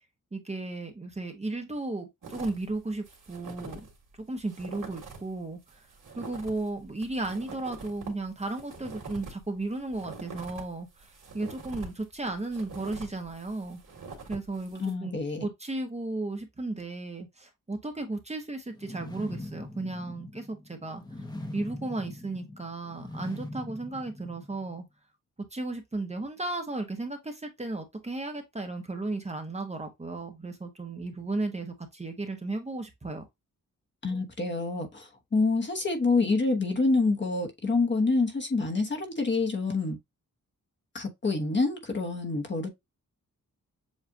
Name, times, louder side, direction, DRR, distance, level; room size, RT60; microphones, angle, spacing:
voice 1, 0.3-3.8 4.3-5.6 6.2-11.1 11.3-13.8 14.3-15.1 15.4-21.0 21.5-24.8 25.5-33.2, right 2 dB, 20° right, 1.0 m, -34 dB
sound 1, 2.2-2.7 3.0-3.9 4.2-4.3 4.5-5.3 5.7-10.6 11.0-14.9, right 4 dB, 75° right, 2.0 m, -44 dB
voice 2, 14.8-15.5 34.0-40.0 40.9-42.7, left 3 dB, 35° left, 1.1 m, -27 dB
sound 2, 18.7-24.8, left 1 dB, 15° left, 0.9 m, -42 dB
7.3 x 2.5 x 2.7 m
wide cardioid pair, 135°, 32 cm